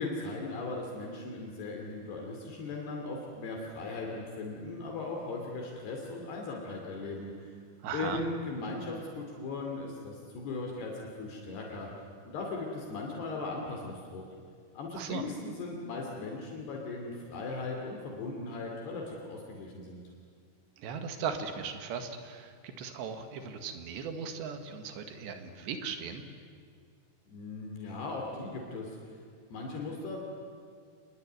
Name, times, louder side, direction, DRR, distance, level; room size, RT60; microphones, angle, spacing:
voice 1, 0.0-7.5 7.9-11.9 12.2-14.2 14.7-20.0 27.3-29.2 29.5-30.2, left 3 dB, 65° left, 0 dB, 4.5 m, -38 dB
voice 2, 7.8-8.2 14.9-15.3 20.8-26.2, right 6 dB, 75° right, 7 dB, 3.9 m, -38 dB
27.0 x 21.5 x 9.3 m, 2.1 s
omnidirectional pair, 5.2 m